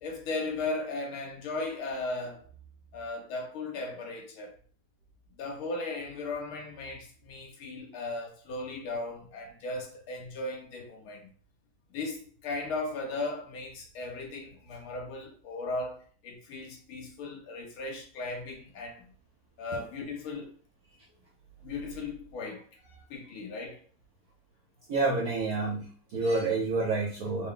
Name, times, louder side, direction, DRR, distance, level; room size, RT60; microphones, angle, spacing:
voice 1, 0.0-2.5 2.9-4.5 5.4-11.3 11.9-19.1 19.6-20.5 21.6-23.8, left 3 dB, 75° left, 1.7 m, -37 dB
voice 2, 24.9-27.5, right 3 dB, 70° right, 0.9 m, -28 dB
4.3 x 2.2 x 3.6 m
omnidirectional pair, 2.4 m